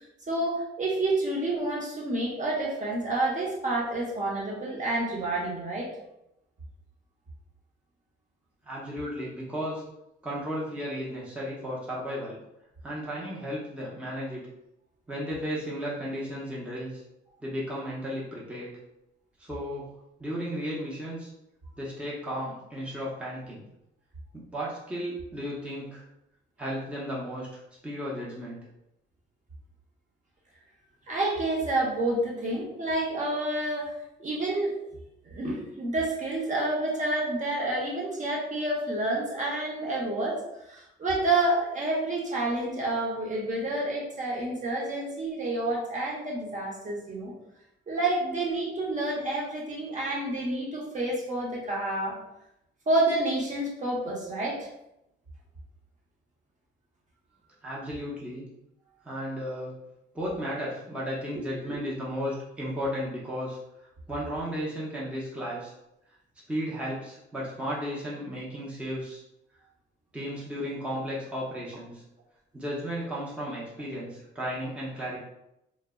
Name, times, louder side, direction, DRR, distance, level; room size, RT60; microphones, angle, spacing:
voice 1, 0.3-5.9 31.1-33.9 34.2-34.7 35.2-40.4 40.7-47.3 47.9-52.2 52.9-54.7 61.7-61.8, right 2 dB, 40° right, -3 dB, 0.9 m, -29 dB
voice 2, 8.7-9.8 10.2-12.4 12.8-14.5 15.1-17.0 17.4-18.8 19.4-19.9 20.2-21.3 21.8-23.6 24.3-26.0 26.6-28.6 57.6-58.5 59.0-59.7 60.1-63.6 64.1-65.7 66.5-69.2 70.1-72.0 72.5-75.2, equal, 5° right, -6 dB, 0.6 m, -34 dB
2.0 x 2.0 x 3.5 m, 0.85 s
cardioid pair, 90°, 20 cm